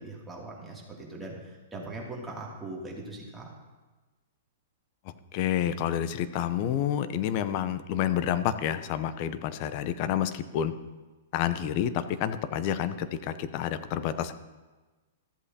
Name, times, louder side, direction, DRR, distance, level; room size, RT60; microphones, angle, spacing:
voice 1, 0.0-3.5, right 2 dB, 10° right, -4 dB, 2.7 m, -40 dB
voice 2, 5.1-10.7 11.3-14.3, left 10 dB, 45° left, 12 dB, 0.7 m, -29 dB
14.5 x 7.9 x 2.9 m, 1.2 s
hypercardioid pair, 115°, 0 cm